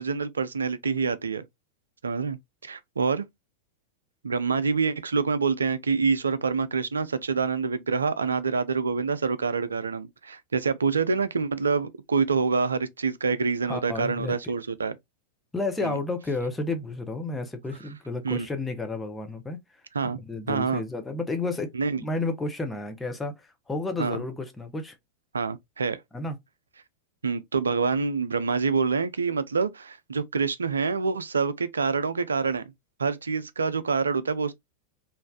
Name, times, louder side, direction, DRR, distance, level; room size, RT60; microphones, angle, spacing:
voice 1, 0.0-1.4 2.0-2.4 2.6-3.3 4.2-14.9 15.8-15.9 18.2-18.5 19.9-20.2 20.5-20.8 21.7-22.0 24.0-24.2 25.3-26.0 27.2-32.6 33.0-34.5, right 5 dB, 75° right, 0.4 m, -26 dB
voice 2, 13.6-14.4 15.5-19.6 20.1-21.7 22.0-25.0 26.1-26.4, left 3 dB, 10° left, 0.7 m, -31 dB
3.2 x 2.5 x 2.2 m
figure-of-eight pair, 90°, 0 cm